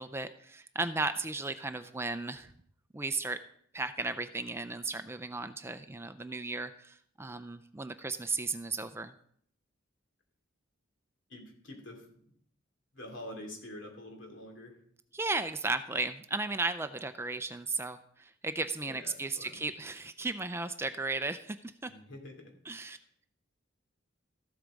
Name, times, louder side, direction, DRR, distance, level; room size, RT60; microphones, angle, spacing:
voice 1, 0.0-2.5 2.9-3.4 3.7-9.1 15.1-21.9 22.7-23.0, right 3 dB, 10° right, 10 dB, 0.4 m, -35 dB
voice 2, 11.3-12.0 12.9-14.8 18.8-19.6 21.9-22.5, left 1 dB, 65° left, 2 dB, 2.9 m, -46 dB
13.5 x 8.1 x 5.1 m, 0.64 s
head